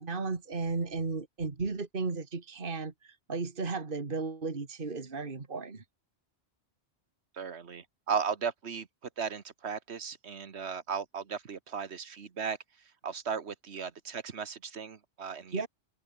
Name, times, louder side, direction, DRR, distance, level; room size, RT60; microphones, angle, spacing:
voice 1, 0.0-5.8 15.5-15.7, right 4 dB, 45° right, 2.1 m, -34 dB
voice 2, 7.3-8.9 9.2-12.6 13.0-15.7, right 6 dB, 70° right, 1.7 m, -36 dB
open air
omnidirectional pair, 1.2 m